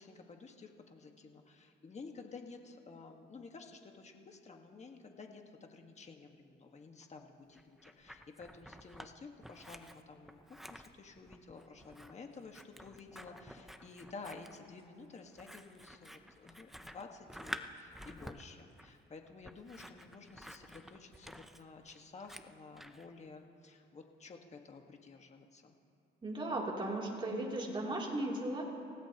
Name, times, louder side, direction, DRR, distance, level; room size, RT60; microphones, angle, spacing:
voice 1, 0.0-25.7, left 4 dB, 35° left, 3 dB, 1.6 m, -52 dB
Scissors, 7.5-9.1 9.4-23.1, equal, ahead, 0.6 m, -50 dB
voice 2, 26.2-28.6, right 1 dB, 25° right, -2 dB, 3.2 m, -36 dB
28.0 x 16.5 x 3.0 m, 2.5 s
cardioid pair, 100°, 20 cm